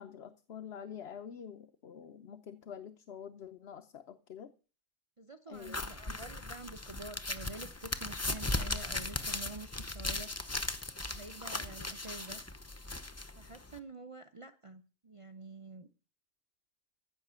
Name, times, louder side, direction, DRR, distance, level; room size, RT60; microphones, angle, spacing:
voice 1, 0.0-4.5 5.5-5.8, left 8 dB, 60° left, 1.1 m, -47 dB
voice 2, 5.2-10.3 11.1-12.4 13.4-15.9, right 3 dB, 30° right, 0.7 m, -48 dB
sound 1, 5.6-13.8, left 2 dB, 15° left, 0.7 m, -38 dB
14.5 x 6.5 x 8.1 m
omnidirectional pair, 1.3 m